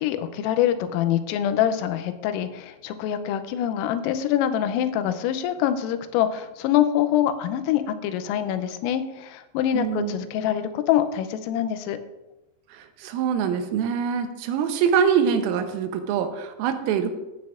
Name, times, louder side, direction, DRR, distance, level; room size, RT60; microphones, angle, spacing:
voice 1, 0.0-12.0, left 10 dB, 90° left, 10 dB, 3.3 m, -25 dB
voice 2, 9.7-10.1 12.7-17.1, right 7 dB, 85° right, 7 dB, 3.4 m, -24 dB
15.5 x 9.5 x 2.5 m, 0.99 s
omnidirectional pair, 5.8 m